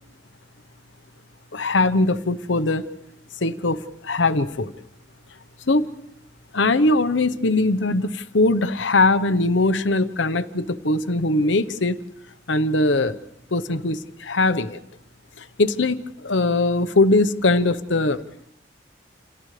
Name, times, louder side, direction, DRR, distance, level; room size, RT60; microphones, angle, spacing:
voice 1, 1.5-2.9 3.4-4.7 5.7-5.9 6.5-12.0 12.5-13.2 13.5-14.8 15.4-18.2, left 2 dB, 85° left, 10 dB, 1.0 m, -21 dB
30.0 x 27.5 x 3.3 m, 0.76 s
head